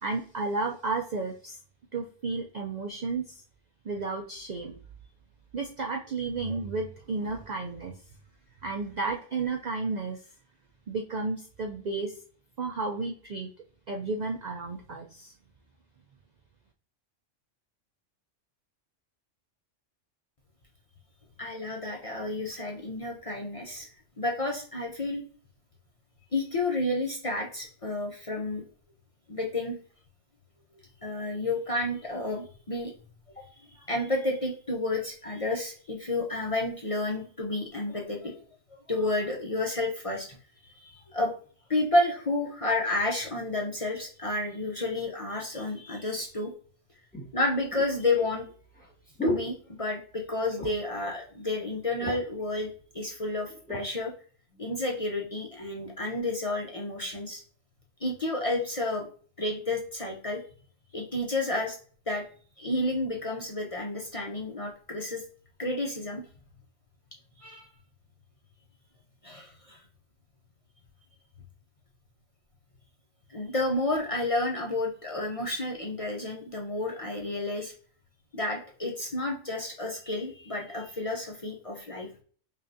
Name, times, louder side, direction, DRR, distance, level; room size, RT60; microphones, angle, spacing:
voice 1, 0.0-1.6 1.9-3.4 3.8-4.8 5.5-8.0 8.6-10.2 10.9-12.2 12.6-13.5 13.9-15.3, right 3 dB, 60° right, 1 dB, 0.4 m, -32 dB
voice 2, 21.4-23.9 24.2-25.2 26.3-28.6 29.3-29.8 31.0-32.9 33.4-33.5 33.7-38.3 38.7-40.4 40.6-41.3 41.7-46.5 47.3-48.5 49.2-54.1 54.6-57.4 58.0-59.1 59.4-60.4 60.9-61.8 62.1-62.2 62.6-65.2 65.6-66.2 67.4-67.7 69.2-69.8 73.3-77.7 78.3-82.1, left 2 dB, 40° left, -1 dB, 0.5 m, -31 dB
sound 1, 46.2-46.3 47.1-50.2 50.5-51.0 51.3-51.4 51.7-52.4 53.1-53.9 54.5-54.7, left 1 dB, 5° left, 1.3 m, -36 dB
5.4 x 2.5 x 2.6 m, 0.43 s
omnidirectional pair, 1.3 m